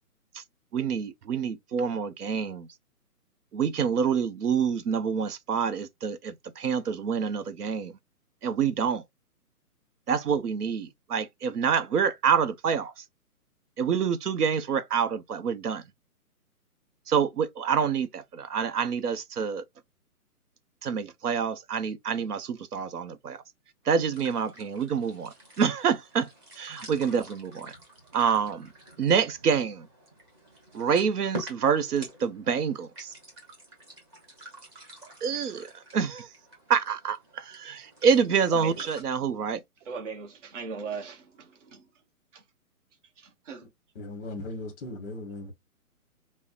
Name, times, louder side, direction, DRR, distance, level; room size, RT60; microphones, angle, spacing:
voice 1, 0.7-2.7 3.5-7.9 8.4-9.0 10.1-12.9 13.8-15.8 17.1-19.6 20.8-23.4 23.9-26.3 26.6-27.7 28.1-28.7 29.0-29.9 30.7-33.1 35.2-36.3 36.7-39.6, right 6 dB, 75° right, 0.8 m, -27 dB
sound 1, 23.8-39.0, right 2 dB, 15° right, 0.9 m, -47 dB
voice 2, 38.5-38.9 39.8-41.8 42.3-42.4 43.2-43.6, right 5 dB, 50° right, 1.1 m, -39 dB
voice 3, 43.9-45.5, left 2 dB, 10° left, 0.7 m, -37 dB
5.3 x 2.1 x 2.4 m
hypercardioid pair, 155°, 46 cm